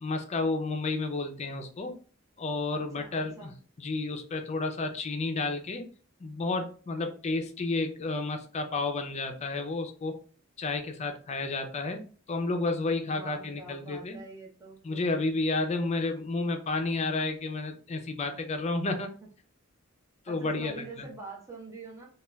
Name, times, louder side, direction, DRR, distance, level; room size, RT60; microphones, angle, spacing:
voice 1, 0.0-1.9 2.4-3.5 3.8-5.8 6.2-10.1 10.6-14.2 14.8-19.1 20.3-21.1, left 3 dB, 30° left, 6 dB, 0.4 m, -31 dB
voice 2, 2.7-3.6 12.8-14.8 20.3-22.1, right 3 dB, 15° right, -2 dB, 0.7 m, -45 dB
3.1 x 2.3 x 2.2 m, 0.40 s
head